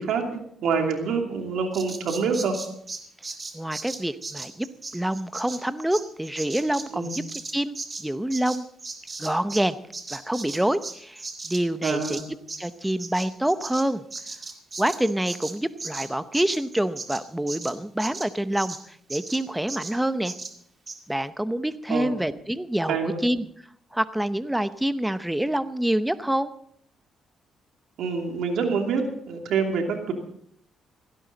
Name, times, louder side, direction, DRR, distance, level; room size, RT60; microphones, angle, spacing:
voice 1, 0.0-2.6 6.9-7.2 11.8-12.2 21.9-22.1 22.9-23.2 28.0-30.1, right 5 dB, 80° right, 3 dB, 2.7 m, -26 dB
Bird vocalization bird call bird song, 1.7-9.7 9.9-18.8 19.1-19.4 19.7-20.0 20.2-20.5 20.9-21.0, right 3 dB, 30° right, 2.2 m, -37 dB
voice 2, 3.5-4.7 4.9-7.2 7.5-8.7 9.2-9.8 10.1-12.2 12.6-14.0 14.8-20.3 21.1-23.5 23.9-26.5, right 1 dB, 5° right, 12 dB, 0.8 m, -26 dB
16.5 x 16.5 x 4.0 m, 0.67 s
cardioid pair, 90°, 0 cm